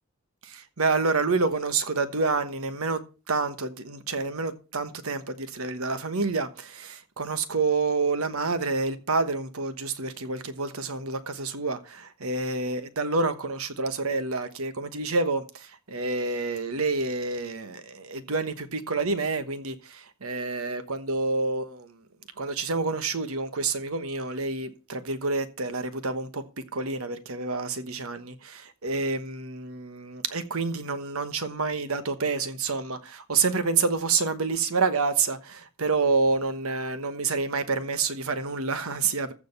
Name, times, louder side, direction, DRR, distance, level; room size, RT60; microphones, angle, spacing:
voice 1, 0.4-22.0 22.4-39.3, right 4 dB, 75° right, 1.2 m, -28 dB
15.0 x 5.2 x 6.9 m
head